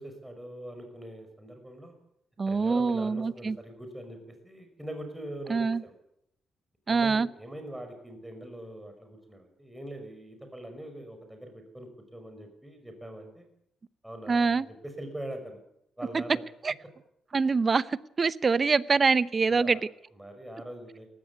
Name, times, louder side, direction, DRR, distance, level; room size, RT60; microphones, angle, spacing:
voice 1, 0.0-2.0 2.5-4.2 4.4-5.9 6.9-13.5 14.0-15.6 16.0-16.4 19.5-19.8 20.2-21.1, right 1 dB, 5° right, 5 dB, 5.7 m, -42 dB
voice 2, 2.4-3.6 5.5-5.8 6.9-7.3 14.3-14.7 16.1-16.2 16.6-16.7 17.3-19.8, right 4 dB, 35° right, 18 dB, 0.8 m, -25 dB
18.5 x 14.5 x 9.5 m, 0.77 s
cardioid pair, 90°, 0 cm